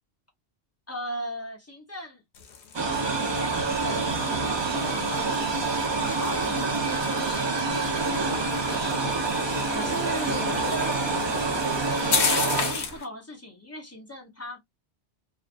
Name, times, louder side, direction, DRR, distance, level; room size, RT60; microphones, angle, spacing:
voice 1, 0.9-2.2 2.8-9.1 9.7-11.0 12.1-14.6, equal, 15° left, 0.8 m, -38 dB
sound 1, 2.3-13.1, left 6 dB, 85° left, 1.0 m, -34 dB
sound 2, 2.7-13.0, right 3 dB, 35° right, 0.5 m, -27 dB
2.6 x 2.4 x 2.4 m
omnidirectional pair, 1.1 m